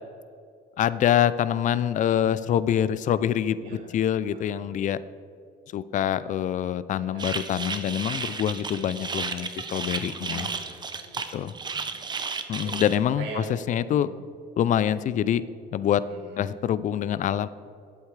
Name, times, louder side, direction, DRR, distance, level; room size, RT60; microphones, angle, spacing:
voice 1, 0.8-5.0 5.7-10.5 11.3-11.5 12.5-14.1 14.6-15.4 15.7-16.0 16.4-17.5, left 10 dB, 50° left, 16 dB, 0.4 m, -25 dB
voice 2, 3.6-3.9 4.3-4.7 7.0-7.4 10.2-11.2 12.6-12.9 13.2-13.5 13.9-14.2 16.1-16.5, right 3 dB, 90° right, -1 dB, 2.5 m, -42 dB
sound 1, 7.2-13.0, right 5 dB, 25° right, 0.7 m, -33 dB
12.0 x 7.9 x 3.3 m, 2.3 s
cardioid pair, 110°, 17 cm